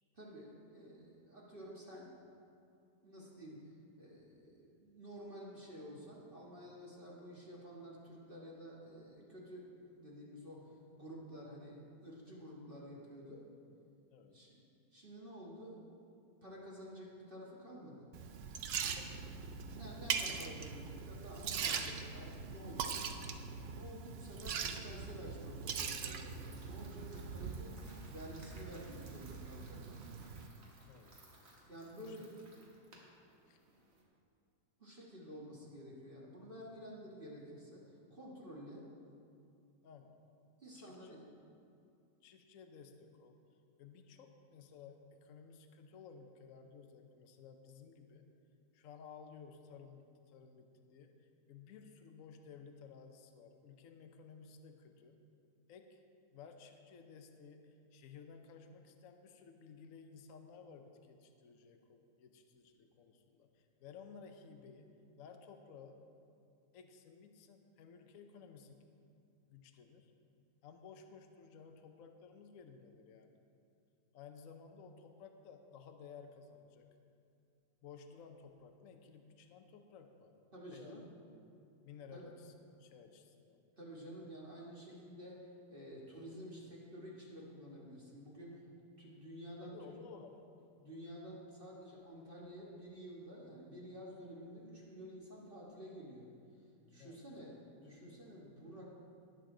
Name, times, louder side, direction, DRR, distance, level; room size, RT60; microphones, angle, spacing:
voice 1, 0.1-2.1 3.0-3.7 4.0-13.5 14.3-14.7 14.9-15.8 16.4-18.1 19.7-23.0 23.7-30.1 31.7-32.4 33.7-33.8 34.8-38.9 40.6-41.3 80.5-81.0 82.1-82.3 83.8-88.6 89.0-90.0 90.8-96.3 96.9-98.9, equal, 35° right, -5 dB, 1.6 m, -51 dB
Liquid, 18.1-30.5, right 6 dB, 90° right, 0.5 m, -42 dB
sound 1, 26.1-34.0, right 2 dB, 50° right, 2.0 m, -62 dB
voice 2, 30.8-31.2 32.0-32.2 33.5-33.6 39.8-40.1 40.8-41.3 42.2-43.4 43.8-48.2 48.7-51.1 51.5-55.2 55.7-56.0 56.3-64.9 65.2-66.0 66.7-68.8 69.5-70.1 70.6-73.4 74.1-76.9 77.8-80.3 80.7-81.1 81.8-82.5 82.8-83.6 89.6-90.3 97.0-97.2, left 6 dB, 60° left, 5 dB, 1.0 m, -56 dB
19.0 x 6.8 x 3.8 m, 2.4 s
omnidirectional pair, 1.9 m